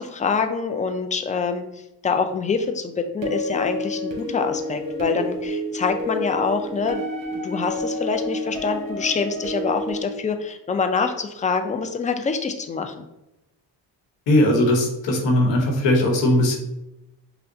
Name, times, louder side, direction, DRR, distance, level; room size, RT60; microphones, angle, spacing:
voice 1, 0.0-1.6 2.0-7.1 7.3-12.9, left 5 dB, 20° left, 7 dB, 0.4 m, -25 dB
sound 1, 3.2-10.0, left 1 dB, 50° right, 1.1 m, -29 dB
voice 2, 14.3-16.6, left 1 dB, 80° left, 1 dB, 1.1 m, -19 dB
5.4 x 2.1 x 2.7 m, 0.91 s
cardioid pair, 75°, 43 cm